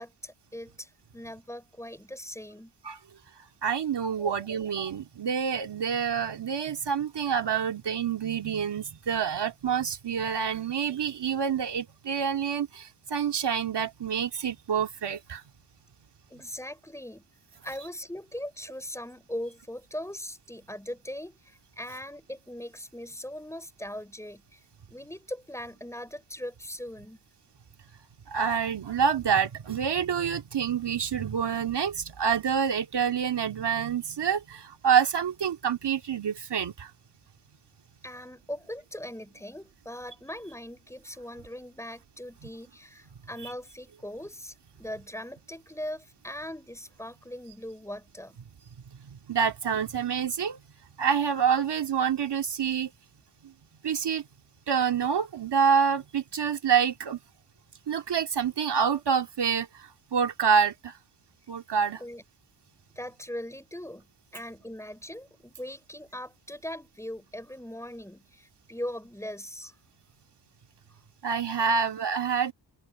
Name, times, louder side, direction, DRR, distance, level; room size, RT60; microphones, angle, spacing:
voice 1, 0.0-2.7 4.2-4.3 16.3-17.2 17.6-24.6 24.9-27.2 38.0-48.4 62.0-62.2 63.0-64.1 64.3-69.7 71.7-71.9, left 1 dB, 5° left, 6.1 m, -40 dB
voice 2, 3.6-15.4 28.3-36.9 49.3-50.6 51.0-52.9 53.8-54.2 54.7-57.2 57.9-60.9 61.5-62.0 71.2-72.5, right 7 dB, 60° right, 2.2 m, -27 dB
open air
cardioid pair, 60°, 45 cm